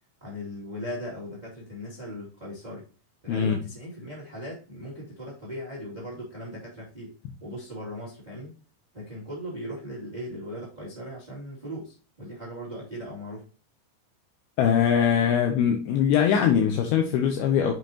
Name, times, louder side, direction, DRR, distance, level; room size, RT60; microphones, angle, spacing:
voice 1, 0.2-2.9 3.2-8.5 8.9-13.4, equal, 15° right, 1.9 m, -38 dB
voice 2, 14.6-17.7, left 8 dB, 80° left, 2.6 m, -22 dB
7.3 x 5.7 x 2.8 m
omnidirectional pair, 4.7 m